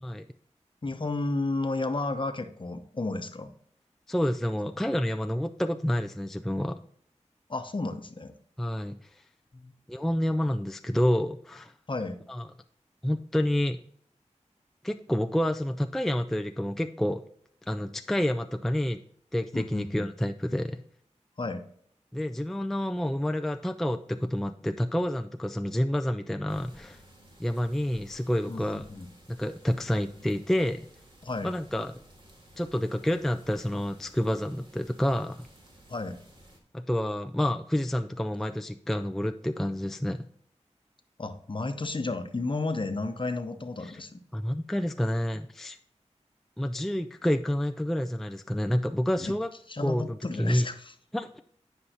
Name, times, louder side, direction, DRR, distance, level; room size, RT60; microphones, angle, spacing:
voice 1, 0.8-3.5 7.5-8.3 9.5-9.7 11.9-12.2 19.5-20.1 21.4-21.6 28.5-29.1 31.2-31.5 35.9-36.2 41.2-44.2 49.2-49.3 49.7-50.9, left 2 dB, 45° left, 8 dB, 0.9 m, -32 dB
voice 2, 4.1-6.7 8.6-9.0 9.9-11.7 12.3-12.5 13.0-13.8 14.8-17.2 17.7-19.0 19.3-20.8 22.1-27.0 27.4-28.9 29.3-30.8 31.4-31.9 32.6-35.5 36.7-40.3 43.8-44.0 44.3-45.8 46.6-49.5 49.8-50.7 51.1-51.4, equal, 5° left, 7 dB, 0.4 m, -28 dB
sound 1, 26.5-36.6, right 1 dB, 40° right, 1.9 m, -55 dB
9.9 x 5.5 x 2.9 m, 0.62 s
wide cardioid pair, 50°, 12 cm